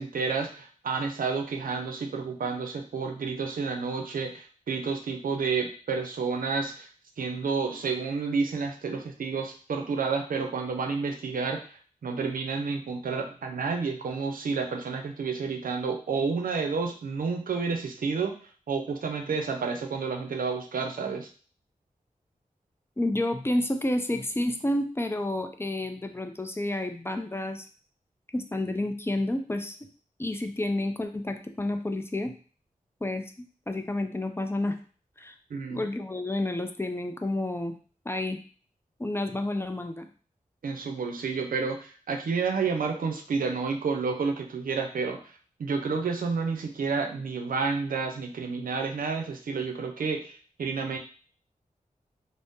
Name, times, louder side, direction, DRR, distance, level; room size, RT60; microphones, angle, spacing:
voice 1, 0.0-6.9 7.2-11.7 12.0-18.4 18.7-21.3 35.5-35.9 40.6-45.2 45.6-51.0, right 5 dB, 80° right, 4 dB, 0.5 m, -30 dB
voice 2, 23.0-27.7 28.3-29.8 30.2-32.3 33.0-33.3 33.7-34.8 35.2-35.3 35.7-37.8 38.1-38.4 39.0-40.1, left 1 dB, 15° left, 6 dB, 0.4 m, -30 dB
2.6 x 2.0 x 3.5 m, 0.40 s
wide cardioid pair, 60°, 14 cm